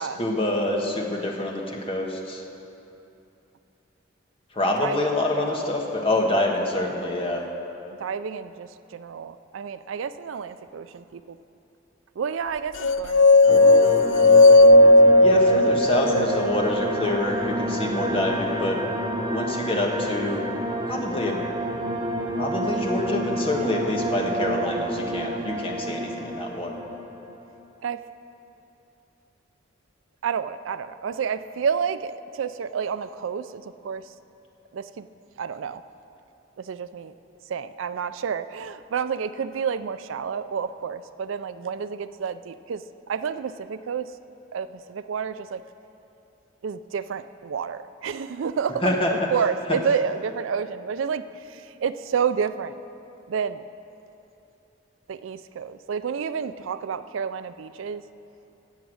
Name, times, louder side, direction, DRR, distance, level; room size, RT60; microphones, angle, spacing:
voice 1, 0.0-2.4 4.5-7.4 15.2-18.8 19.3-20.4 20.9-21.4 22.3-26.7 48.8-49.1, left 1 dB, 25° left, 0 dB, 1.4 m, -26 dB
voice 2, 8.0-11.0 12.2-13.3 14.8-15.3 17.0-17.2 27.8-28.0 30.2-34.0 34.7-35.1 35.4-35.8 36.7-37.1 37.5-42.8 43.1-44.1 44.5-45.6 46.6-49.0 49.3-51.2 51.8-52.7 53.3-53.6 55.1-58.0, right 6 dB, 75° right, 13 dB, 0.4 m, -29 dB
sound 1, 12.8-16.9, left 2 dB, 65° left, 0.3 m, -15 dB
sound 2, 13.5-27.5, right 1 dB, 20° right, 0.8 m, -29 dB
17.0 x 7.1 x 6.3 m, 2.8 s
head